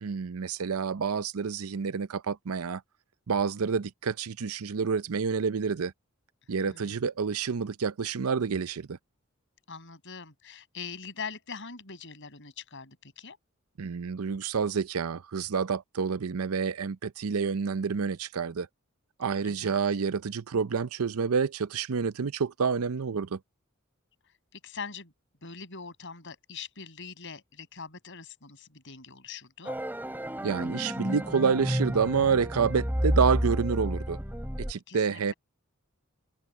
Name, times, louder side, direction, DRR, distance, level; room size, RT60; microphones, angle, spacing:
voice 1, 0.0-2.8 3.3-5.9 6.5-9.0 13.8-18.7 19.2-23.4 30.4-34.2 34.6-35.3, right 5 dB, 85° right, 0.6 m, -28 dB
voice 2, 6.5-7.0 9.7-13.4 19.4-19.7 24.5-25.1 25.4-29.8 34.9-35.3, left 5 dB, 60° left, 6.7 m, -42 dB
sound 1, 29.6-34.7, equal, 10° right, 3.4 m, -30 dB
head